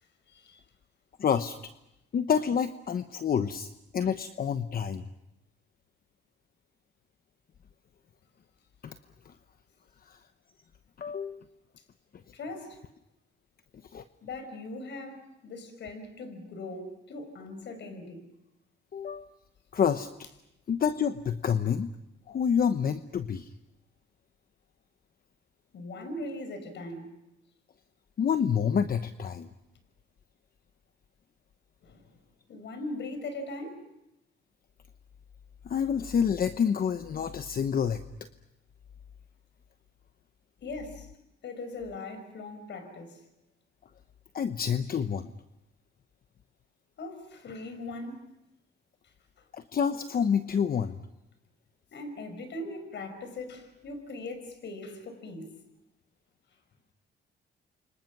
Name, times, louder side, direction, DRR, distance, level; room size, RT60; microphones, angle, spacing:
voice 1, 0.3-0.6 12.3-12.8 14.2-18.2 25.7-27.1 31.8-32.1 32.5-33.8 40.6-41.1 41.4-43.2 47.0-48.3 51.9-55.5, left 2 dB, 65° left, 5.5 m, -40 dB
voice 2, 1.2-1.6 2.1-3.7 3.9-5.0 8.8-8.9 9.2-9.3 10.1-10.2 11.0-11.4 13.9-14.0 18.9-19.3 19.7-20.1 20.7-21.9 22.3-23.5 28.2-29.5 35.6-38.0 44.3-45.3 49.5-50.9, left 7 dB, 50° left, 1.0 m, -28 dB
29.5 x 25.5 x 6.1 m
cardioid pair, 90°, 20 cm